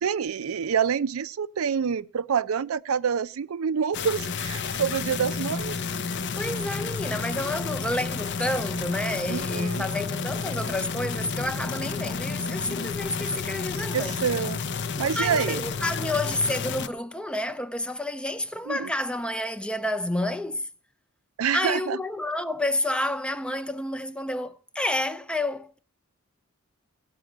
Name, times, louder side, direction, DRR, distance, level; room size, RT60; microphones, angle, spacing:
voice 1, 0.0-5.8 9.3-9.8 13.9-14.6 15.0-15.6 18.7-18.9 21.4-22.0, right 7 dB, 70° right, 0.4 m, -27 dB
sound 1, 3.9-16.9, left 5 dB, 55° left, 0.5 m, -31 dB
voice 2, 6.4-14.2 15.2-20.7 21.5-25.8, left 1 dB, 5° left, 0.4 m, -29 dB
17.0 x 6.2 x 6.1 m
head